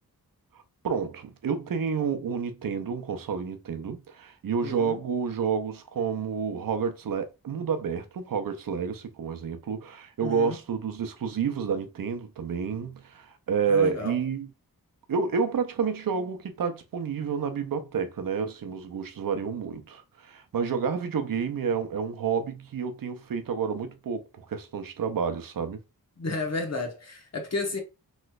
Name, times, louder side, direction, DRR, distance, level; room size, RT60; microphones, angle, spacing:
voice 1, 0.5-14.5 15.1-25.8, right 6 dB, 65° right, 0.6 m, -29 dB
voice 2, 4.6-5.0 10.2-10.6 13.7-14.2 26.2-27.8, left 3 dB, 45° left, 1.1 m, -32 dB
3.1 x 3.0 x 2.4 m
wide cardioid pair, 75°, 36 cm